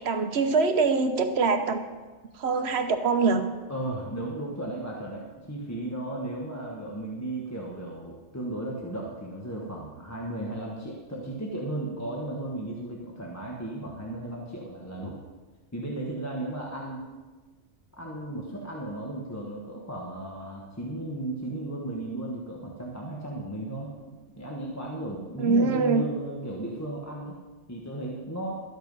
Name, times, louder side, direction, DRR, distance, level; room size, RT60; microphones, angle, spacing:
voice 1, 0.0-1.8 2.3-3.4 25.4-26.1, right 4 dB, 60° right, 8 dB, 1.1 m, -24 dB
voice 2, 3.7-15.2 15.7-17.0 17.9-27.4 27.7-28.5, right 1 dB, 15° left, -2 dB, 1.2 m, -35 dB
13.0 x 8.0 x 5.4 m, 1.3 s
omnidirectional pair, 1.2 m